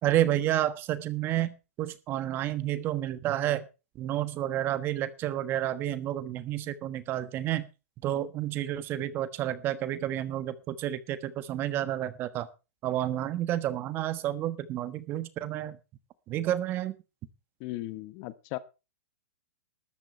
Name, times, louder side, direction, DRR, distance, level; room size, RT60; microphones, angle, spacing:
voice 1, 0.0-3.7 4.0-7.7 8.0-12.5 12.8-15.8 16.3-16.9, right 13 dB, 25° right, 1.3 m, -30 dB
voice 2, 17.6-18.6, left 18 dB, 35° left, 1.1 m, -37 dB
13.5 x 12.0 x 4.4 m
hypercardioid pair, 145°, 8 cm